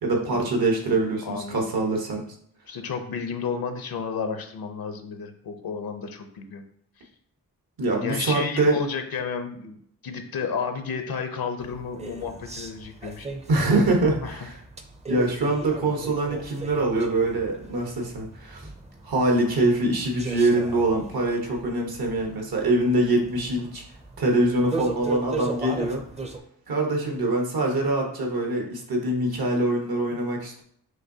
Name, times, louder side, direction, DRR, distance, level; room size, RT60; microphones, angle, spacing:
voice 1, 0.0-2.2 7.8-8.8 13.5-14.5 15.1-18.7 19.0-23.8 24.2-26.0 26.7-30.6, right 2 dB, 75° right, 1 dB, 1.1 m, -24 dB
voice 2, 1.2-1.7 2.7-6.6 8.0-13.3 14.2-14.5 22.3-22.4 30.1-30.2, left 5 dB, 70° left, 7 dB, 0.6 m, -32 dB
sound 1, 11.6-26.4, right 3 dB, 20° right, 0.5 m, -38 dB
5.9 x 2.7 x 2.7 m, 0.66 s
cardioid pair, 70°, 37 cm